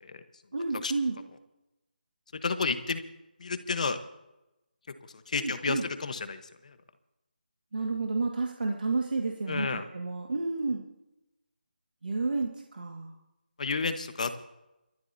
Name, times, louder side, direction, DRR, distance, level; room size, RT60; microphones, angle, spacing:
voice 1, 0.5-1.2 5.4-5.8 7.7-10.8 12.0-13.2, right 3 dB, 65° right, 1 dB, 1.8 m, -31 dB
voice 2, 2.4-3.0 3.4-4.0 5.3-6.7 9.5-9.8 13.6-14.4, left 4 dB, 45° left, 10 dB, 1.2 m, -31 dB
26.5 x 13.5 x 2.8 m, 0.96 s
figure-of-eight pair, 165°, 5 cm